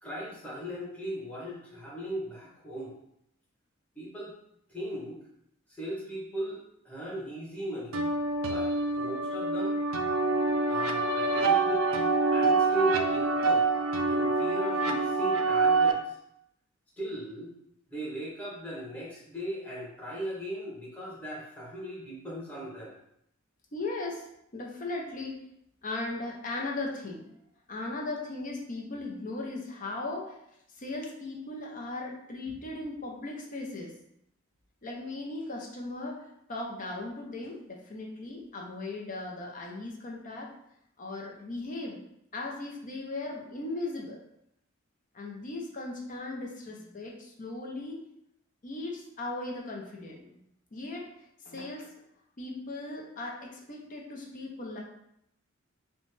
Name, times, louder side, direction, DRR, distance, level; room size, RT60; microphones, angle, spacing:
voice 1, 0.0-2.9 3.9-4.4 4.7-5.2 5.8-6.6 6.8-8.0 8.5-9.8 10.7-11.9 12.3-13.7 14.1-16.0 17.0-17.5 17.9-22.9, right 1 dB, 5° left, -6 dB, 1.2 m, -37 dB
sound 1, 7.9-15.9, right 3 dB, 80° right, 0.4 m, -26 dB
voice 2, 23.7-24.3 24.5-25.4 25.8-27.3 27.7-30.4 30.7-33.9 34.8-40.5 41.0-42.0 42.3-44.2 45.1-48.0 48.6-50.4 50.7-51.1 51.4-51.9 52.4-54.8, left 2 dB, 40° left, -1 dB, 0.7 m, -37 dB
5.3 x 2.2 x 3.2 m, 0.76 s
head